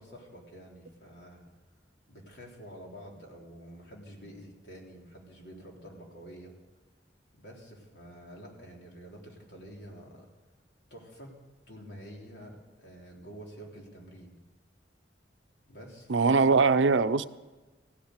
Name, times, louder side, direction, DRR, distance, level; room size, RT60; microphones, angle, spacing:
voice 1, 0.0-1.5 2.1-6.6 7.4-10.3 10.9-11.4 11.7-14.4 15.7-16.6, equal, 65° left, 3.7 m, -48 dB
voice 2, 16.1-17.3, right 4 dB, 85° right, 0.6 m, -22 dB
16.0 x 10.5 x 8.2 m
head